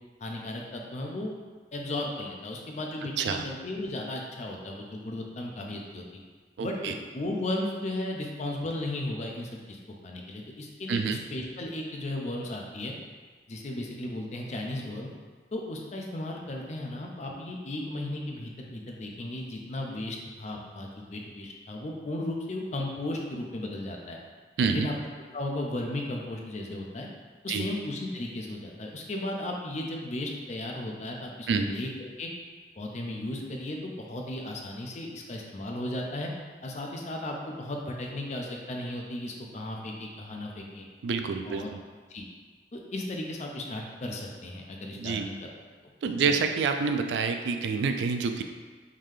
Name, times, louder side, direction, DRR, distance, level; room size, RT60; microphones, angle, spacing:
voice 1, 0.2-1.3 1.7-6.2 6.6-9.8 10.0-12.9 13.5-15.1 15.5-24.2 24.7-24.9 25.3-27.1 27.4-32.3 32.8-36.3 36.6-40.9 41.4-41.7 42.1-42.3 42.7-45.7 46.2-46.3, left 1 dB, 40° left, 0 dB, 0.5 m, -35 dB
voice 2, 6.6-6.9 10.9-11.2 24.6-24.9 27.5-27.7 31.5-31.7 41.0-41.8 45.0-45.3 46.0-48.4, right 5 dB, 75° right, 6 dB, 0.3 m, -27 dB
3.7 x 2.7 x 3.2 m, 1.5 s
head